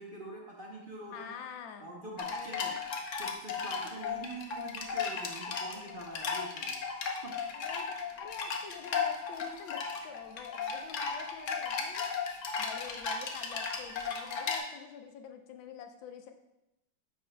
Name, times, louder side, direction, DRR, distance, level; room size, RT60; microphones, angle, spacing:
voice 1, 0.0-1.3 1.8-2.8 3.2-6.7 7.2-7.5, right 1 dB, 60° right, -1 dB, 0.5 m, -44 dB
voice 2, 1.1-1.9 2.3-2.8 7.5-12.1 12.6-16.3, left 7 dB, 90° left, 6 dB, 1.4 m, -46 dB
sound 1, 2.2-14.6, left 5 dB, 55° left, 0.9 m, -35 dB
9.8 x 6.6 x 2.2 m, 0.90 s
omnidirectional pair, 2.1 m